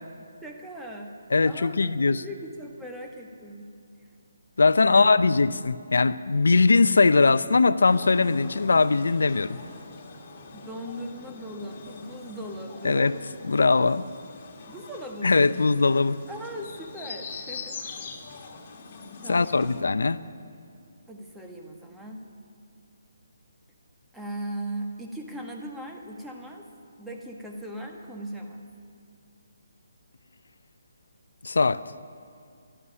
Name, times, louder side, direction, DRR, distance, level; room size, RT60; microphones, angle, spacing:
voice 1, 0.4-1.2 1.4-3.7 4.8-5.1 10.5-13.2 14.7-15.5 16.3-18.1 19.2-19.8 21.1-22.2 24.1-26.6 27.0-28.7, right 1 dB, 5° right, 1.5 m, -39 dB
voice 2, 1.3-2.2 4.6-9.6 12.8-13.1 13.5-14.1 15.2-16.2 19.3-20.2 31.4-31.8, left 4 dB, 75° left, 0.5 m, -20 dB
sound 1, 7.8-19.8, left 4 dB, 35° left, 2.1 m, -43 dB
12.5 x 11.0 x 9.6 m
figure-of-eight pair, 150°, 0 cm